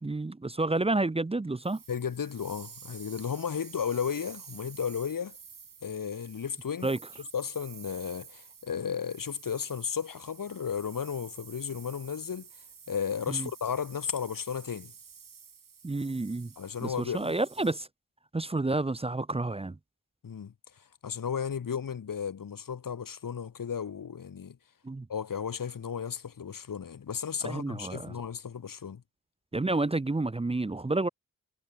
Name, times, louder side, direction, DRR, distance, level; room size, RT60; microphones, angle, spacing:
voice 1, 0.0-1.8 6.8-7.0 13.3-13.5 15.8-16.5 16.8-17.9 18.3-19.8 24.8-25.1 27.4-28.1 29.5-31.1, right 2 dB, 20° right, 0.8 m, -30 dB
sound 1, 1.6-17.9, right 6 dB, 75° right, 7.7 m, -51 dB
voice 2, 1.9-5.4 5.8-6.9 7.3-12.5 12.9-14.9 16.6-17.3 20.2-20.5 21.0-24.6 25.1-29.0, left 7 dB, 80° left, 2.8 m, -34 dB
wide cardioid pair, 165°, 33 cm